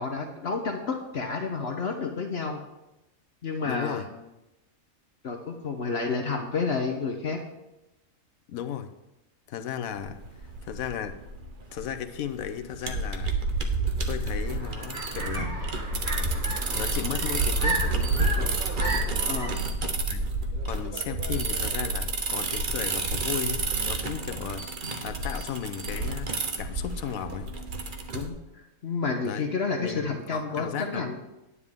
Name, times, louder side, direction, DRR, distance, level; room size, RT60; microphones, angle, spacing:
voice 1, 0.0-2.6 3.4-4.1 5.2-7.4 19.3-19.6 28.1-31.2, left 4 dB, 50° left, 4 dB, 1.1 m, -30 dB
voice 2, 3.6-4.1 8.5-8.9 9.5-10.2 10.6-11.2 11.7-13.4 14.1-15.6 16.7-18.5 20.1-20.2 20.7-23.6 23.9-24.8 25.0-26.3 26.6-27.5 29.2-29.5 29.8-31.1, left 8 dB, 80° left, 9 dB, 1.2 m, -35 dB
sound 1, 10.0-28.3, right 3 dB, 45° right, 0.9 m, -29 dB
sound 2, 14.3-19.5, right 2 dB, 80° right, 4.4 m, -34 dB
9.8 x 9.6 x 3.6 m, 0.96 s
omnidirectional pair, 1.4 m